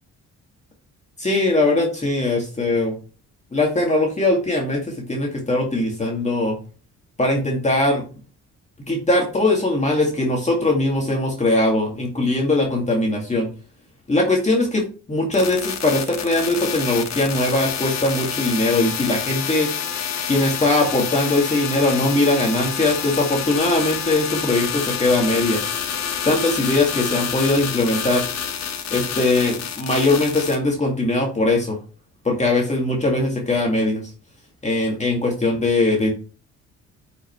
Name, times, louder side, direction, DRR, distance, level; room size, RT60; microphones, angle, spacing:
voice 1, 1.2-2.9 3.5-6.6 7.2-8.0 8.9-13.5 14.1-19.7 20.3-25.7 26.3-28.2 28.9-31.8 32.2-34.0 34.6-36.1, left 2 dB, 25° left, 0 dB, 2.1 m, -20 dB
sound 1, 15.3-30.6, left 8 dB, 60° left, 1.3 m, -28 dB
8.4 x 5.6 x 3.1 m, 0.35 s
cardioid pair, 90°, 30 cm